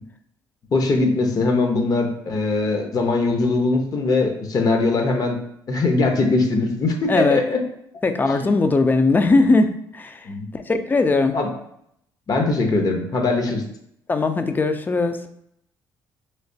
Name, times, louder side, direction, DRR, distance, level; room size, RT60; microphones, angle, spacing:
voice 1, 0.7-5.4 5.7-7.6 8.4-8.5 10.2-10.5 11.3-11.5 12.3-13.6, left 3 dB, 45° left, 3 dB, 0.7 m, -21 dB
voice 2, 7.1-7.4 8.0-10.2 10.5-11.4 14.1-15.2, left 3 dB, 20° left, 8 dB, 0.4 m, -19 dB
3.2 x 2.8 x 2.7 m, 0.73 s
cardioid pair, 85°, 9 cm